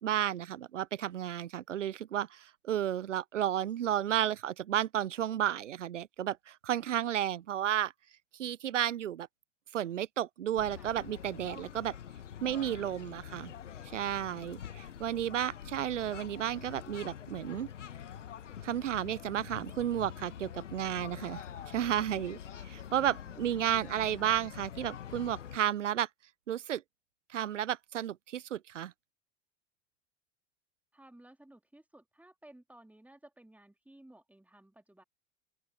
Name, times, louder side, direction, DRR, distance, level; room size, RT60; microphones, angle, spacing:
voice 1, 0.0-7.9 8.4-9.3 9.7-12.0 12.4-13.5 13.9-17.7 18.6-21.4 21.7-22.4 22.6-26.1 26.5-26.8 27.3-28.9, right 11 dB, 85° right, 0.6 m, -32 dB
sound 1, 10.6-25.6, left 9 dB, 80° left, 1.3 m, -45 dB
voice 2, 12.4-12.9 15.0-15.3 23.0-24.3 30.9-35.0, right 1 dB, 5° right, 3.3 m, -57 dB
open air
figure-of-eight pair, 75°, 36 cm